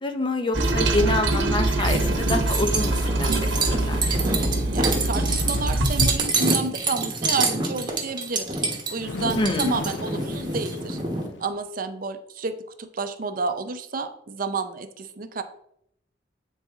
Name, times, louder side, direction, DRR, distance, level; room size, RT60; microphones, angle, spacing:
voice 1, 0.0-4.2 9.4-9.8, left 2 dB, 25° left, 6 dB, 0.6 m, -27 dB
Toilet flush, 0.5-6.2, right 1 dB, 90° right, 0.9 m, -24 dB
sound 1, 1.8-11.3, right 3 dB, 25° right, 1.1 m, -27 dB
voice 2, 4.2-11.0 11.4-15.4, right 4 dB, 50° right, 9 dB, 0.6 m, -30 dB
Bird, 4.8-6.2 9.0-11.5, left 2 dB, 85° left, 0.6 m, -36 dB
8.4 x 4.1 x 3.5 m, 0.73 s
head